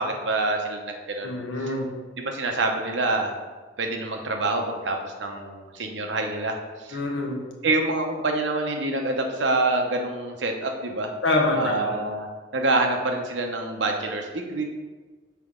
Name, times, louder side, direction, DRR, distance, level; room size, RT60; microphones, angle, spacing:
voice 1, 0.0-1.3 1.6-1.8 2.1-3.3 3.8-7.0 7.6-11.1 11.5-12.3 12.5-14.6, right 2 dB, 80° right, 3 dB, 0.8 m, -26 dB
voice 2, 1.2-1.9 6.9-7.4 11.2-12.0, left 2 dB, 90° left, 0 dB, 1.1 m, -25 dB
5.9 x 4.5 x 3.7 m, 1.3 s
head